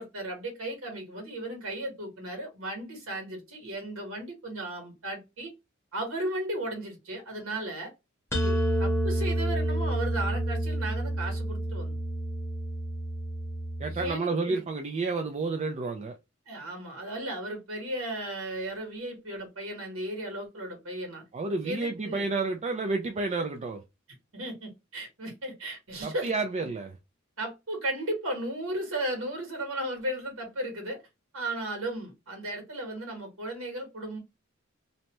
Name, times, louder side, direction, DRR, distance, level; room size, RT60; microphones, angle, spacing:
voice 1, 0.0-5.5 5.9-7.9 8.3-11.9 13.8-14.6 16.5-21.2 21.6-22.3 24.3-26.3 26.6-26.7 27.4-31.0 31.3-34.2, right 1 dB, 80° right, 1.4 m, -35 dB
sound 1, 8.3-14.1, right 1 dB, 10° left, 0.8 m, -29 dB
voice 2, 13.8-16.2 21.3-23.8 26.0-27.0, right 3 dB, 30° right, 0.3 m, -30 dB
2.7 x 2.1 x 2.9 m
head